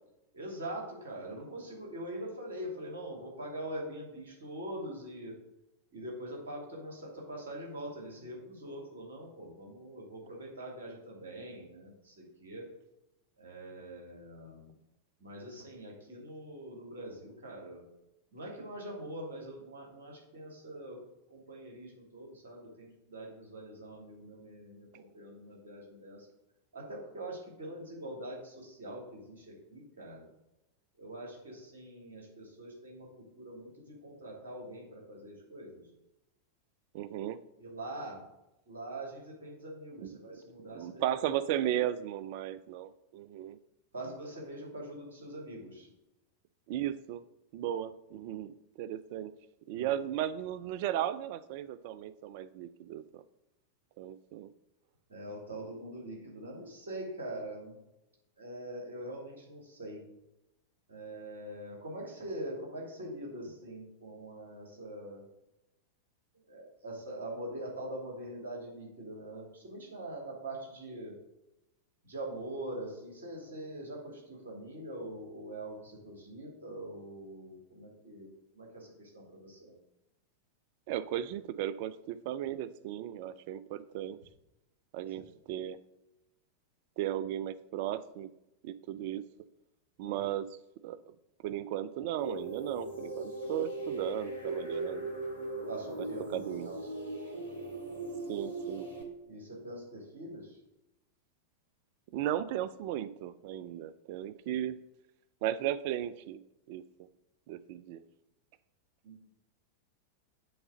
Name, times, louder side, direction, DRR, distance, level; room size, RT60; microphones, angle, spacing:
voice 1, 0.3-5.3 5.9-12.6 13.4-14.7 15.2-17.8 18.3-21.0 21.3-26.3 26.7-30.3 31.0-35.8 37.6-38.2 38.7-41.0 43.9-45.9 49.7-49.9 55.1-57.8 58.4-60.0 60.9-65.2 66.5-71.1 72.0-78.3 78.5-79.7 85.1-85.2 90.0-90.3 95.7-96.8 99.3-100.6 109.0-109.2, right 1 dB, 65° right, -2 dB, 2.9 m, -43 dB
voice 2, 36.9-37.4 40.0-40.2 40.7-43.6 46.7-47.2 47.5-49.3 49.7-53.2 54.0-54.5 80.9-84.2 84.9-85.8 87.0-88.3 88.6-89.3 90.0-90.6 90.8-91.0 91.4-95.2 96.0-96.7 98.3-98.9 102.1-104.8 105.4-106.4 106.7-106.8 107.5-108.0, right 11 dB, 50° right, 15 dB, 0.4 m, -35 dB
sound 1, 92.2-99.0, right 2 dB, 85° left, 2.2 m, -39 dB
7.8 x 3.6 x 6.6 m, 0.93 s
figure-of-eight pair, 90°, 0 cm